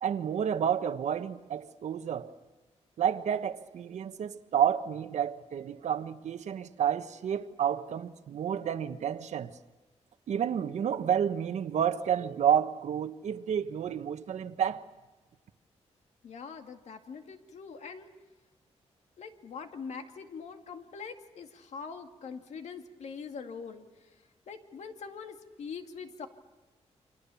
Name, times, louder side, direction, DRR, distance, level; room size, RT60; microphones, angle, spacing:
voice 1, 0.0-2.3 3.0-9.5 10.3-14.9, right 9 dB, 85° right, 1.2 m, -30 dB
voice 2, 16.2-18.1 19.2-26.3, left 5 dB, 80° left, 2.2 m, -43 dB
29.5 x 25.0 x 7.1 m
wide cardioid pair, 140°, 12 cm